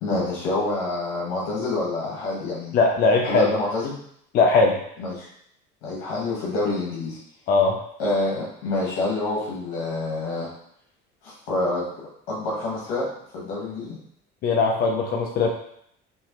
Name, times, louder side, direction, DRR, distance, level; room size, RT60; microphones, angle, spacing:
voice 1, 0.0-2.8 3.2-4.0 5.0-5.3 5.8-7.2 8.0-10.5 11.2-11.9 12.3-13.1 13.3-14.0, left 2 dB, 85° left, -6 dB, 1.3 m, -27 dB
voice 2, 2.7-3.5 4.3-4.8 7.5-7.8 14.4-15.5, left 4 dB, 45° left, 1 dB, 0.6 m, -19 dB
4.5 x 3.0 x 3.0 m, 0.70 s
cardioid pair, 150°, 21 cm